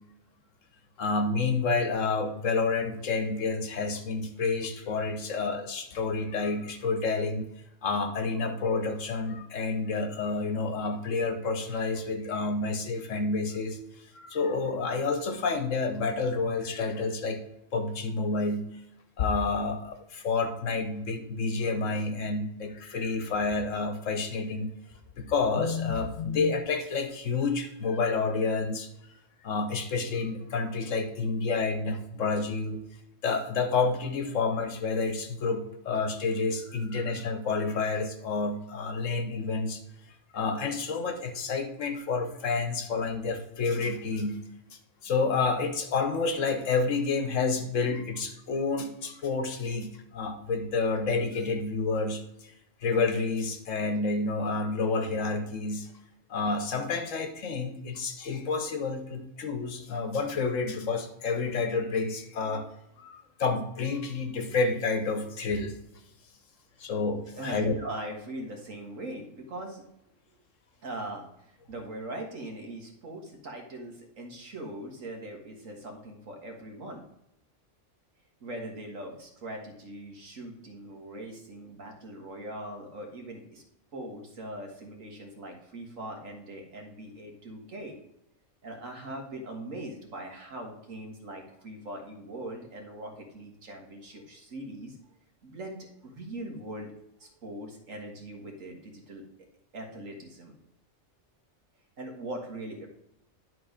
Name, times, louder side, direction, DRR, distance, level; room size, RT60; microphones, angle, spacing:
voice 1, 1.0-7.4 7.8-13.8 14.1-17.4 17.7-18.6 19.2-24.7 25.2-28.9 29.4-32.8 33.2-39.8 40.3-44.4 45.0-52.5 52.8-55.9 56.3-62.7 63.0-65.8 66.8-67.7, left 4 dB, 75° left, 6 dB, 1.4 m, -29 dB
voice 2, 67.4-69.9 70.8-77.0 78.4-83.6 83.9-88.0 88.6-95.0 95.4-96.9 97.2-99.3 99.7-100.6 102.0-102.9, right 1 dB, 85° right, 2 dB, 1.9 m, -41 dB
11.0 x 3.9 x 5.0 m, 0.81 s
omnidirectional pair, 1.3 m